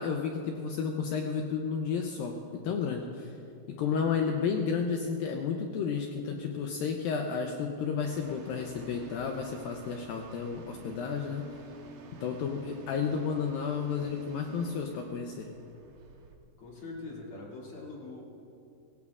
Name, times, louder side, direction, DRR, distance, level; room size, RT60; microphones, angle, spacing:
voice 1, 0.0-3.3 3.7-11.5 12.2-15.5, left 6 dB, 85° left, 2 dB, 2.0 m, -32 dB
voice 2, 4.3-4.7 16.6-18.2, left 3 dB, 40° left, -4 dB, 2.7 m, -43 dB
sound 1, 8.0-16.4, right 4 dB, 70° right, 2.2 m, -50 dB
22.0 x 16.5 x 2.4 m, 2.7 s
omnidirectional pair, 5.0 m